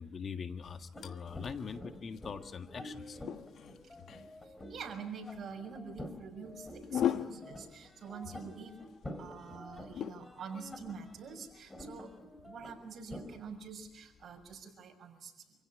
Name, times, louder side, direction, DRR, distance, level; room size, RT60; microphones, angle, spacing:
voice 1, 0.0-3.2, left 6 dB, 50° left, 7 dB, 1.7 m, -42 dB
sound 1, 0.6-14.6, left 10 dB, 70° left, 1.3 m, -43 dB
sound 2, 0.9-13.4, left 1 dB, 15° left, 4.6 m, -49 dB
voice 2, 4.7-8.8 9.2-15.3, right 5 dB, 55° right, 4 dB, 6.3 m, -46 dB
28.0 x 16.5 x 10.0 m, 0.98 s
cardioid pair, 90°, 0 cm